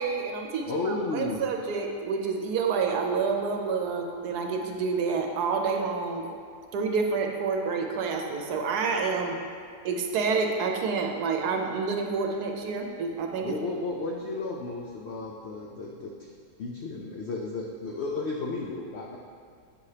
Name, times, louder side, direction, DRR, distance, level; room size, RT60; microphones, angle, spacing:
voice 1, 0.0-6.3 6.7-9.4 9.8-13.6, right 5 dB, 80° right, 2 dB, 1.1 m, -28 dB
voice 2, 0.6-1.4 13.4-16.3 16.6-19.2, left 3 dB, 85° left, -1 dB, 0.5 m, -33 dB
7.6 x 4.8 x 2.8 m, 2.2 s
omnidirectional pair, 1.7 m